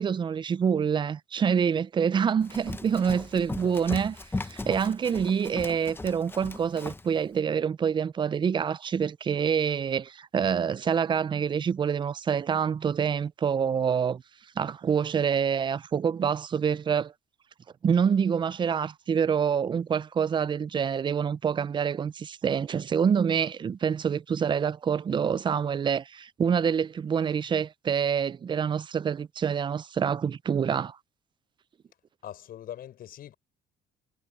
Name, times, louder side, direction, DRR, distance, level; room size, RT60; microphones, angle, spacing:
voice 1, 0.0-4.1 4.4-14.2 14.6-17.1 17.8-31.0, right 7 dB, 30° right, 0.4 m, -26 dB
Run, 2.4-7.1, left 3 dB, 15° left, 0.9 m, -37 dB
voice 2, 32.2-33.4, left 11 dB, 60° left, 6.5 m, -42 dB
cardioid pair, 110°, 17 cm